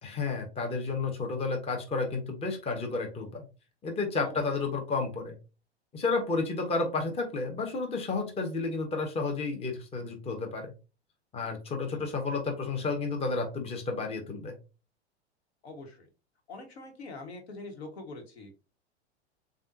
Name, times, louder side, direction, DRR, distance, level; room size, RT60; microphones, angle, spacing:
voice 1, 0.0-3.5 3.8-5.3 5.9-10.7 11.3-14.5, left 3 dB, 15° left, 3 dB, 1.0 m, -31 dB
voice 2, 15.6-16.1 16.5-18.6, left 2 dB, 70° left, 4 dB, 1.4 m, -44 dB
7.1 x 2.5 x 2.7 m, 0.31 s
figure-of-eight pair, 95°, 34 cm